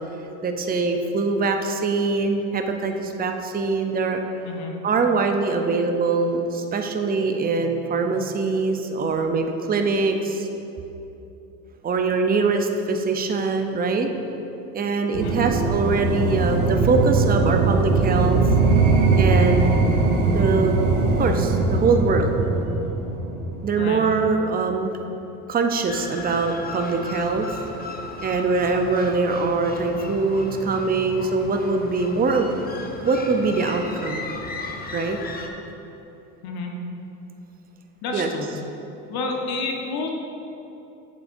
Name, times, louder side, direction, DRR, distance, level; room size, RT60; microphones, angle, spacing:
voice 1, 0.4-4.2 4.8-10.5 11.8-14.1 14.7-18.5 19.2-19.7 20.3-22.3 23.6-24.9 25.5-27.5 28.2-32.5 33.0-34.3 34.9-35.2 38.1-38.3, right 4 dB, 20° right, 5 dB, 0.6 m, -23 dB
sound 1, 15.1-24.2, right 3 dB, 75° right, 1.1 m, -21 dB
sound 2, 25.9-35.5, left 3 dB, 20° left, 0.8 m, -36 dB
voice 2, 38.0-38.5 39.1-40.1, left 3 dB, 55° left, 1 dB, 1.1 m, -29 dB
8.1 x 7.0 x 2.6 m, 2.9 s
hypercardioid pair, 70°, 44 cm